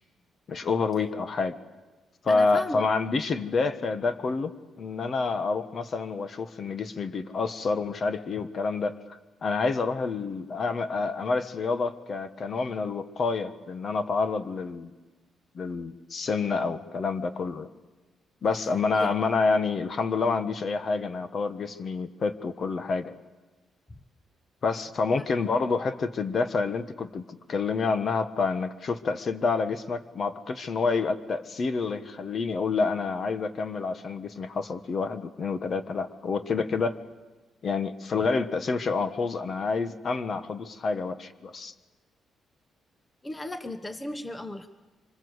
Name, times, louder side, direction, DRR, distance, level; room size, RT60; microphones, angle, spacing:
voice 1, 0.5-1.6 2.2-9.0 9.4-14.9 15.5-17.7 18.4-23.2 24.6-37.0 37.6-41.7, left 4 dB, 40° left, 10 dB, 1.5 m, -28 dB
voice 2, 2.3-2.9 18.9-19.1 25.1-25.3 43.2-44.7, left 1 dB, 15° left, 9 dB, 1.1 m, -36 dB
25.5 x 25.5 x 8.2 m, 1.2 s
cardioid pair, 135°, 0 cm